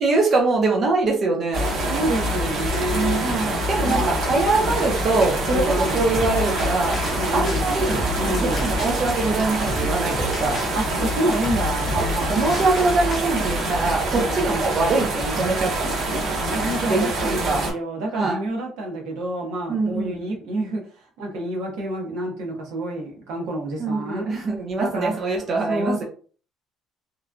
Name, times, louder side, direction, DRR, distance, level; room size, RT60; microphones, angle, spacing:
voice 1, 0.0-1.7 2.9-7.0 7.3-8.0 8.4-10.6 12.3-15.7 16.9-17.6 18.1-18.4 19.7-20.2 23.8-26.0, right 3 dB, 35° right, 0 dB, 0.6 m, -23 dB
sound 1, 1.5-17.7, right 1 dB, 55° right, 1.1 m, -25 dB
voice 2, 1.8-3.2 3.8-4.3 4.5-4.8 5.4-6.0 7.1-7.7 8.2-8.7 10.7-12.6 14.1-14.7 16.5-20.8 21.2-24.4 24.8-25.2 25.7-26.0, right 1 dB, 85° right, 0 dB, 1.0 m, -28 dB
sound 2, 6.1-13.2, left 1 dB, 30° left, 0.6 m, -33 dB
3.0 x 2.2 x 2.5 m, 0.40 s
cardioid pair, 170°, 0 cm